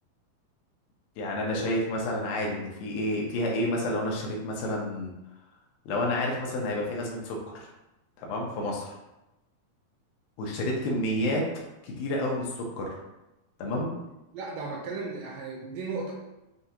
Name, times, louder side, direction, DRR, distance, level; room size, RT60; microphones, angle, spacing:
voice 1, 1.2-5.1 5.9-7.7 8.2-8.9 10.4-11.5 11.8-12.9 13.6-14.0, left 1 dB, 85° left, -1 dB, 2.7 m, -30 dB
voice 2, 14.3-16.1, right 4 dB, 80° right, -2 dB, 2.1 m, -35 dB
6.7 x 2.4 x 2.8 m, 0.97 s
omnidirectional pair, 4.2 m